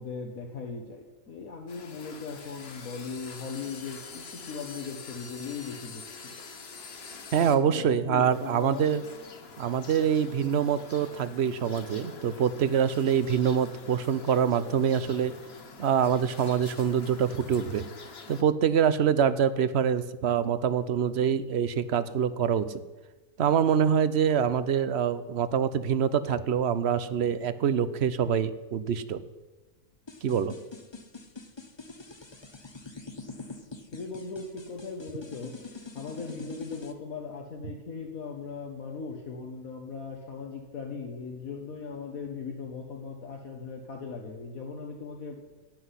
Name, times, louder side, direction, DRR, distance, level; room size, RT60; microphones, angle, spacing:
voice 1, 0.0-6.3 7.4-9.0 33.9-45.4, left 5 dB, 65° left, 1 dB, 1.7 m, -38 dB
sound 1, 1.7-7.5 8.3-18.4, left 4 dB, 45° left, 1.3 m, -46 dB
voice 2, 7.3-9.0 9.6-15.3 15.8-17.9 18.3-22.7 23.4-29.2 30.2-30.5, right 8 dB, 55° right, 14 dB, 0.9 m, -25 dB
sound 2, 30.1-36.9, left 3 dB, 20° left, 0.8 m, -44 dB
17.0 x 6.1 x 9.8 m, 1.2 s
omnidirectional pair, 1.6 m